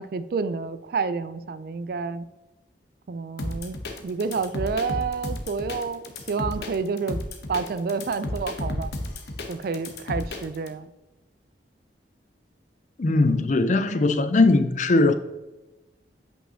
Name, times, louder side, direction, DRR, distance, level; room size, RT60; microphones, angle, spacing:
voice 1, 0.0-2.3 3.1-3.8 4.0-7.2 7.5-8.9 9.5-10.9, right 4 dB, 55° right, 0.3 m, -29 dB
sound 1, 3.4-10.7, left 1 dB, 65° left, 0.9 m, -32 dB
voice 2, 13.0-15.1, left 2 dB, 45° left, 0.4 m, -20 dB
8.7 x 5.5 x 2.7 m
head